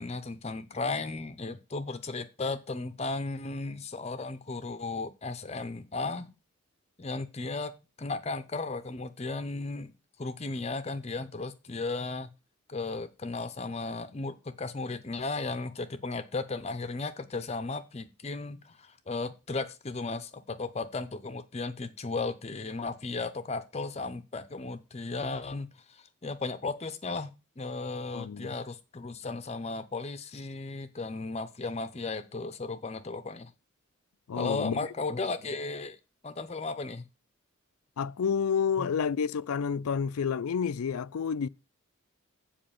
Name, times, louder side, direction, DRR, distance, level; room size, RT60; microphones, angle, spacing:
voice 1, 0.0-6.3 7.0-7.7 8.0-9.9 10.2-12.3 12.7-27.3 27.6-33.5 34.4-36.0 36.2-37.0 38.8-38.9, left 3 dB, 30° left, 0.6 m, -35 dB
voice 2, 28.1-28.5 34.3-34.8 38.0-41.5, left 6 dB, 85° left, 0.4 m, -29 dB
7.7 x 5.1 x 6.9 m
head